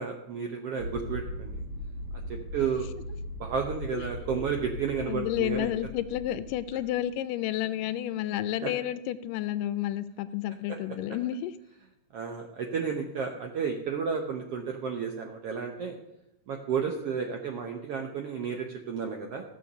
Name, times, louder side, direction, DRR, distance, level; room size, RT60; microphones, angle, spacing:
voice 1, 0.0-1.6 2.3-2.9 3.4-5.7 8.6-8.7 12.1-15.9 16.5-19.4, right 6 dB, 75° right, 4 dB, 1.4 m, -32 dB
sound 1, 0.8-7.0, left 1 dB, 45° right, 0.9 m, -39 dB
voice 2, 5.1-11.5, left 13 dB, 80° left, 13 dB, 2.1 m, -31 dB
14.5 x 7.0 x 6.8 m, 0.84 s
omnidirectional pair, 3.9 m